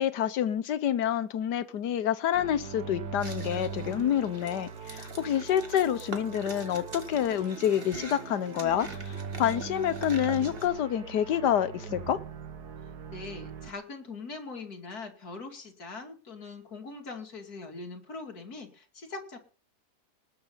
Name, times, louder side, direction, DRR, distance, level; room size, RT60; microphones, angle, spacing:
voice 1, 0.0-12.2, left 10 dB, 85° left, 14 dB, 1.5 m, -28 dB
sound 1, 2.3-13.7, right 5 dB, 70° right, 1.8 m, -41 dB
sound 2, 3.2-10.7, right 3 dB, 35° right, 2.0 m, -44 dB
voice 2, 13.1-19.4, left 3 dB, 65° left, 3 dB, 3.0 m, -42 dB
19.5 x 6.7 x 5.6 m, 0.38 s
omnidirectional pair, 1.7 m